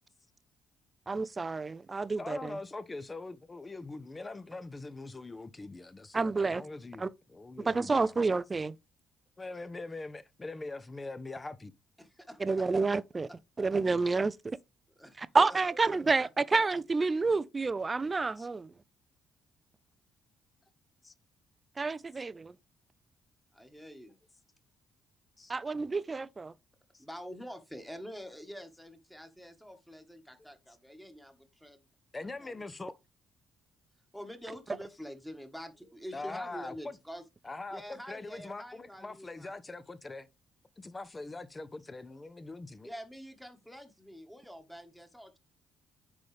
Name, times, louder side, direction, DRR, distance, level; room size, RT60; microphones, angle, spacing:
voice 1, 1.1-2.5 6.1-6.6 7.0-7.1 7.6-8.7 12.4-13.3 13.6-14.6 15.2-18.7 21.8-22.5 25.5-26.5, right 3 dB, 25° right, 0.5 m, -29 dB
voice 2, 2.2-8.1 9.4-11.7 18.4-18.5 21.0-21.1 22.1-22.2 25.4-25.5 26.9-27.0 32.1-33.0 36.1-37.0 37.4-40.3 40.8-42.9, left 3 dB, 25° left, 0.8 m, -42 dB
voice 3, 12.0-12.7 15.0-15.4 23.5-24.2 27.0-31.8 32.4-32.6 34.1-37.2 37.7-39.5 42.8-45.4, equal, ahead, 1.5 m, -46 dB
9.7 x 4.0 x 3.4 m
cardioid pair, 85°, 0 cm